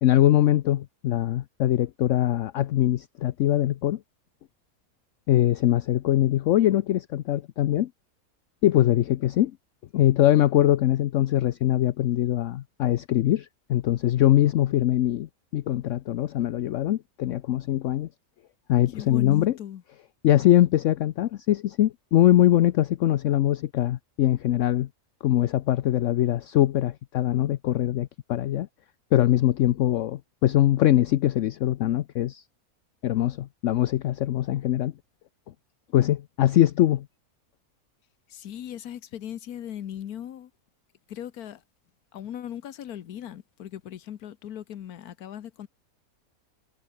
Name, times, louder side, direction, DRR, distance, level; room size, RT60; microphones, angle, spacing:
voice 1, 0.0-4.0 5.3-7.9 8.6-9.5 9.9-18.1 18.7-19.5 20.2-24.9 25.2-28.7 29.1-32.4 33.0-34.9 35.9-37.1, left 13 dB, 65° left, 0.9 m, -22 dB
voice 2, 18.9-19.8 38.3-40.5 41.1-41.6 42.1-45.7, left 10 dB, 90° left, 1.5 m, -38 dB
omnidirectional pair, 1.5 m